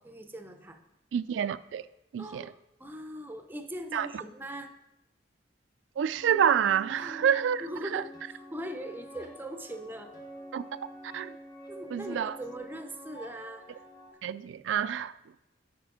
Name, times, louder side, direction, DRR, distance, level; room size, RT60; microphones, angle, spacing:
voice 1, 0.0-0.8 2.2-4.7 7.0-10.1 11.7-13.7, right 1 dB, 10° right, 0.5 m, -41 dB
voice 2, 1.1-1.9 2.1-2.5 3.9-4.1 6.0-7.7 7.9-8.0 10.5-10.6 11.0-11.4 11.9-12.4 14.2-15.1, right 8 dB, 75° right, 0.3 m, -28 dB
sound 1, 6.1-14.1, equal, 25° left, 1.0 m, -48 dB
9.2 x 5.0 x 3.7 m
head